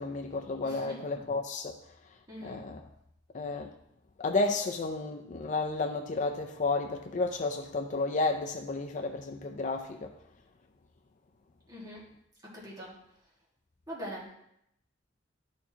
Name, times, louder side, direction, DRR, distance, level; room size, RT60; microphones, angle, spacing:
voice 1, 0.0-1.7 2.4-2.8 3.3-3.7 4.2-10.1, left 3 dB, 40° left, 4 dB, 0.4 m, -32 dB
voice 2, 0.6-1.0 2.3-2.6 11.7-12.0 12.5-12.9 13.9-14.3, equal, 20° right, -6 dB, 2.0 m, -42 dB
12.5 x 4.3 x 2.9 m, 0.77 s
head